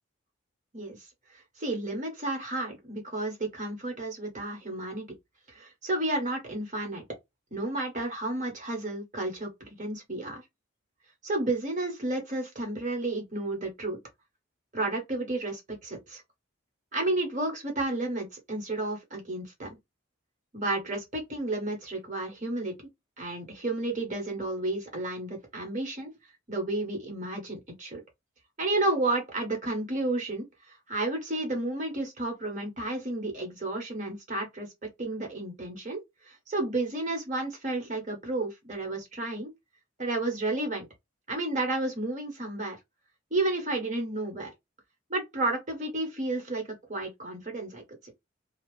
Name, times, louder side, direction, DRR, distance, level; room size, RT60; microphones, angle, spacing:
voice 1, 1.6-5.1 5.5-7.0 7.5-10.4 11.2-14.0 14.7-16.2 16.9-19.8 20.5-22.7 23.2-26.1 26.5-28.0 28.6-34.7 35.0-36.0 36.3-39.5 40.0-40.9 41.3-42.8 43.3-44.5 45.1-48.1, right 2 dB, 40° right, 1.3 m, -32 dB
2.8 x 2.3 x 3.2 m
head